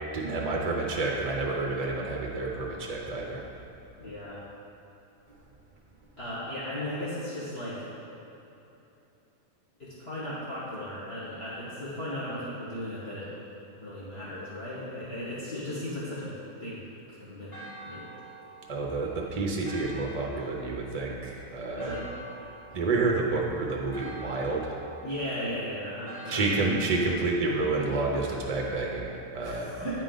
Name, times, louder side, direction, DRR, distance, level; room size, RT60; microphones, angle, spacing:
voice 1, 0.1-3.4 18.7-21.9 22.7-24.8 26.3-29.7, right 3 dB, 50° right, -1 dB, 0.4 m, -29 dB
voice 2, 4.0-4.4 6.2-8.2 9.8-13.3 13.8-16.8 17.1-17.5 17.8-18.0 21.8-22.0 25.0-26.4 29.4-30.0, left 1 dB, 45° left, -10 dB, 1.6 m, -36 dB
Church bell, 17.5-27.2, right 2 dB, 20° left, 1.2 m, -47 dB
8.5 x 5.2 x 3.8 m, 3.0 s
omnidirectional pair, 1.6 m